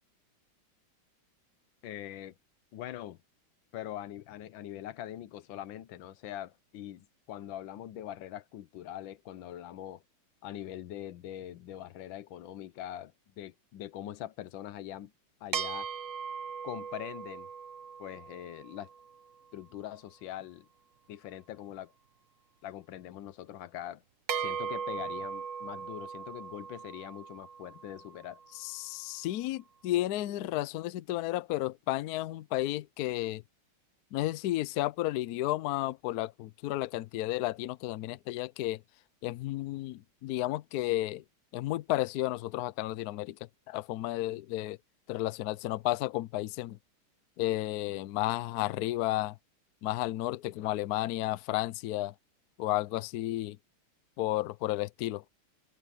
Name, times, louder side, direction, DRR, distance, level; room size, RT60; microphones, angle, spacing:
voice 1, 1.8-2.3 2.7-3.2 3.7-10.0 10.4-15.1 15.4-15.9 16.6-17.5 18.0-18.9 19.5-20.7 21.1-21.9 22.6-24.0 24.4-28.4, left 12 dB, 70° left, 1.4 m, -42 dB
sound 1, 15.5-19.2 24.3-28.7, right 7 dB, 55° right, 0.9 m, -39 dB
voice 2, 28.6-33.4 34.1-38.8 39.2-41.2 41.5-43.4 43.7-44.8 45.1-46.8 47.4-49.4 49.8-52.1 52.6-53.6 54.2-55.2, left 16 dB, 90° left, 0.8 m, -32 dB
omnidirectional pair, 2.3 m